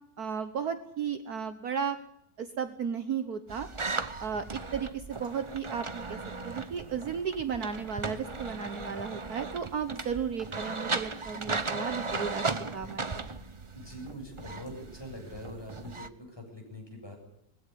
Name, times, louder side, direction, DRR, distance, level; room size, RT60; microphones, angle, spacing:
voice 1, 0.2-2.0 2.4-3.7 4.2-6.2 6.4-12.4 12.7-13.3, right 7 dB, 60° right, 10 dB, 1.6 m, -34 dB
sound 1, 3.5-16.1, right 3 dB, 30° right, 0.6 m, -37 dB
voice 2, 13.7-17.2, left 1 dB, 15° left, 1 dB, 7.6 m, -44 dB
20.5 x 16.0 x 9.7 m, 0.73 s
omnidirectional pair, 1.9 m